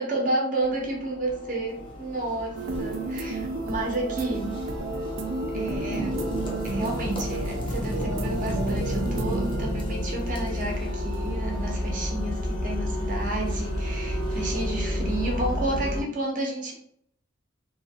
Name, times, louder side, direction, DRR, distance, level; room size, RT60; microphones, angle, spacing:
voice 1, 0.0-4.5 5.5-6.2 6.6-16.7, right 2 dB, 40° right, 0 dB, 0.7 m, -31 dB
sound 1, 0.6-16.0, left 1 dB, 90° left, 1.2 m, -31 dB
sound 2, 1.7-14.9, left 1 dB, 25° left, 0.5 m, -40 dB
sound 3, 2.5-9.7, right 2 dB, 80° right, 0.4 m, -32 dB
2.7 x 2.5 x 2.6 m, 0.67 s
head